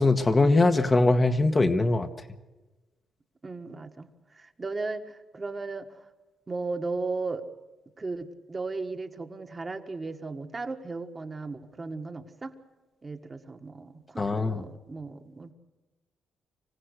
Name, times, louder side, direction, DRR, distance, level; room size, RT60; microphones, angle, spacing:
voice 1, 0.0-2.1 14.2-14.6, left 2 dB, 25° left, 6 dB, 1.3 m, -22 dB
voice 2, 3.4-6.0 6.5-7.4 8.0-12.5 13.0-15.5, right 3 dB, 30° right, 5 dB, 1.6 m, -36 dB
25.5 x 15.5 x 6.6 m, 1.2 s
cardioid pair, 90°, 0 cm